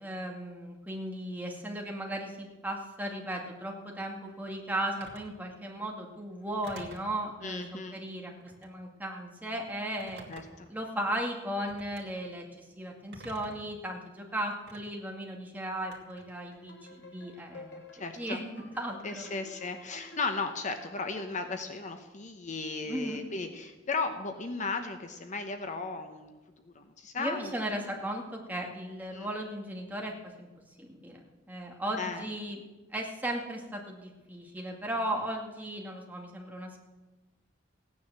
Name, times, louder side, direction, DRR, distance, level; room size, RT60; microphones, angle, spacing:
voice 1, 0.0-7.6 7.9-8.3 8.6-10.3 10.7-17.8 18.1-19.3 22.8-23.2 27.2-30.5 30.8-32.6 32.9-36.8, right 1 dB, 10° right, 1 dB, 2.2 m, -36 dB
Telephone, 5.0-5.3 6.6-7.1 8.4-8.8 10.0-10.7 11.7-12.0 13.1-13.7 14.7-14.8 15.9-16.3, right 2 dB, 60° right, 2.4 m, -48 dB
voice 2, 7.4-8.0 10.3-10.7 17.9-18.4 19.0-26.4 26.6-27.5 29.1-29.3 32.0-32.2, left 3 dB, 40° left, 7 dB, 1.0 m, -36 dB
sound 1, 16.2-21.7, left 2 dB, 65° left, 2.8 m, -52 dB
16.5 x 9.7 x 7.5 m, 1.2 s
head